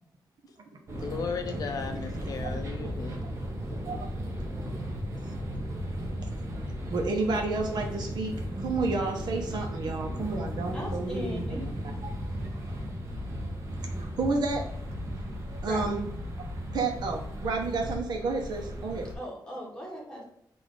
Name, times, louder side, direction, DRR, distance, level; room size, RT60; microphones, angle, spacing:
voice 1, 0.9-3.2, left 5 dB, 50° left, 5 dB, 0.5 m, -35 dB
sound 1, 0.9-19.1, equal, 35° right, 0.9 m, -35 dB
voice 2, 2.2-2.5 3.9-4.1 6.9-11.6 14.2-14.7 15.6-16.0 16.7-19.1, right 3 dB, 65° right, 2 dB, 0.8 m, -30 dB
voice 3, 10.7-11.6 15.6-15.9 19.1-20.2, equal, 10° left, -4 dB, 1.3 m, -38 dB
4.0 x 2.6 x 4.6 m, 0.77 s
wide cardioid pair, 170°, 8 cm